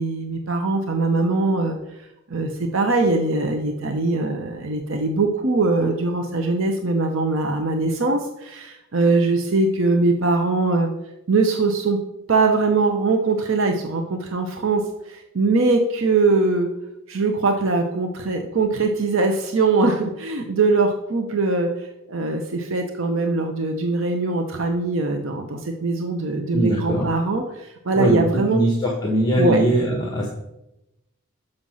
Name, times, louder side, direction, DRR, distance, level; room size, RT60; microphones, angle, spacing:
voice 1, 0.0-1.8 2.3-10.9 11.3-12.0 12.3-16.7 17.1-28.6 29.3-29.6, right 3 dB, 60° right, 4 dB, 0.7 m, -21 dB
voice 2, 26.5-27.1 27.9-28.2 28.5-30.3, right 1 dB, 20° left, -1 dB, 1.1 m, -21 dB
6.4 x 5.6 x 6.2 m, 0.91 s
head